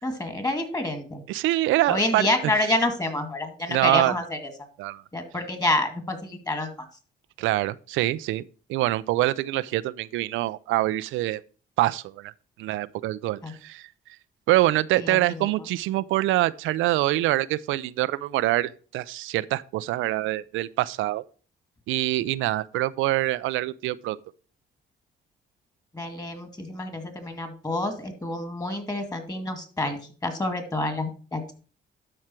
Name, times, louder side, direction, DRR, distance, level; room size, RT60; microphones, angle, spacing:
voice 1, 0.0-1.2 1.9-4.5 5.1-6.7 13.4-13.5 15.0-15.5 25.9-31.5, left 2 dB, 20° left, 2.2 m, -28 dB
voice 2, 1.3-2.3 3.7-4.1 4.8-5.0 7.4-8.4 8.7-11.4 11.8-12.3 12.6-13.8 14.5-21.2 21.9-24.2, right 16 dB, 90° right, 0.4 m, -25 dB
12.0 x 4.8 x 4.4 m
cardioid pair, 90°, 20 cm